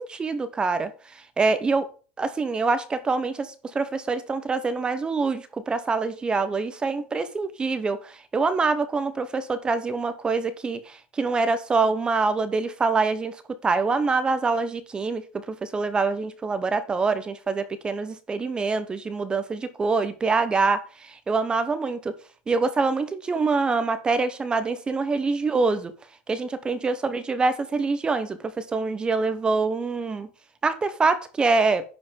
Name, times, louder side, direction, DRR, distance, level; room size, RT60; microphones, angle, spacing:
voice 1, 0.0-1.9 2.2-13.4 13.6-22.1 22.5-25.9 26.3-30.3 30.6-31.8, right 4 dB, 15° right, 13 dB, 0.9 m, -25 dB
10.5 x 5.1 x 5.2 m, 0.37 s
supercardioid pair, 150°, 6 cm